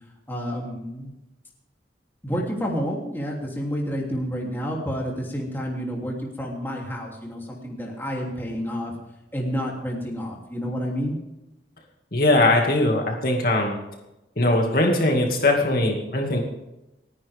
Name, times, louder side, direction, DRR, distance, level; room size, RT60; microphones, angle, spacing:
voice 1, 0.3-1.1 2.2-8.9 9.3-11.2, equal, 10° left, -2 dB, 3.1 m, -29 dB
voice 2, 12.1-13.8 14.4-16.4, left 2 dB, 55° left, 1 dB, 2.3 m, -20 dB
30.0 x 10.0 x 3.6 m, 0.94 s
head